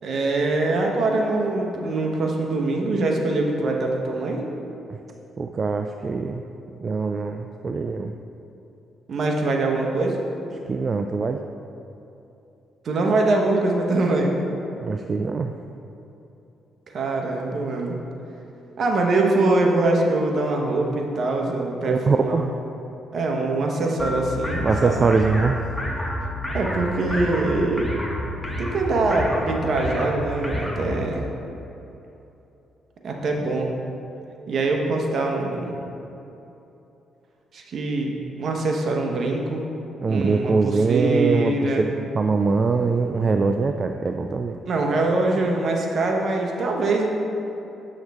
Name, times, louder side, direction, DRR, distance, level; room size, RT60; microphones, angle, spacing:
voice 1, 0.0-4.4 9.1-10.2 12.8-14.4 16.9-18.0 18.8-22.4 23.1-25.1 26.5-27.9 28.6-31.2 33.0-33.7 34.5-35.8 37.5-39.7 40.1-41.8 44.7-47.1, right 2 dB, 55° right, 1 dB, 1.0 m, -23 dB
voice 2, 5.4-6.4 6.8-8.2 10.7-11.4 14.8-15.5 21.9-22.5 24.6-25.7 40.0-44.6, right 4 dB, 35° right, 6 dB, 0.3 m, -23 dB
sound 1, 24.0-31.1, left 1 dB, 10° left, 1.2 m, -29 dB
7.6 x 6.3 x 3.5 m, 2.9 s
cardioid pair, 90°, 0 cm